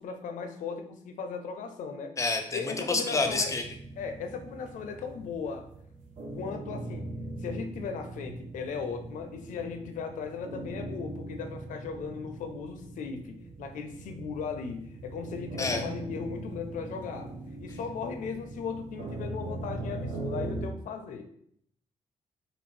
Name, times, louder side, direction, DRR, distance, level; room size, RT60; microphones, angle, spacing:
voice 1, 0.0-2.1 2.5-3.5 4.0-5.7 6.3-7.1 7.4-17.3 17.6-21.3, left 5 dB, 80° left, 7 dB, 0.4 m, -37 dB
voice 2, 2.2-3.6 15.6-15.8, left 3 dB, 25° left, 5 dB, 0.5 m, -28 dB
sound 1, 3.1-20.7, right 2 dB, 80° right, 0.6 m, -40 dB
2.6 x 2.5 x 3.1 m, 0.69 s
cardioid pair, 90°, 13 cm